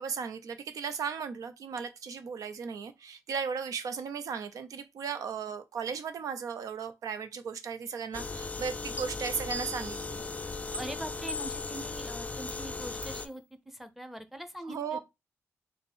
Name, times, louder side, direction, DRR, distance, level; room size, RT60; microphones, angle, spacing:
voice 1, 0.0-10.2 14.6-15.0, right 6 dB, 85° right, 0.5 m, -36 dB
sound 1, 8.1-13.3, left 4 dB, 25° left, 0.4 m, -38 dB
sound 2, 9.0-9.1 9.5-10.1 10.7-10.8 11.3-11.8 12.5-12.6 13.0-13.2, equal, 25° right, 1.2 m, -39 dB
voice 2, 10.7-15.0, right 1 dB, 5° right, 0.7 m, -42 dB
4.2 x 2.0 x 3.5 m
cardioid pair, 75°, 6 cm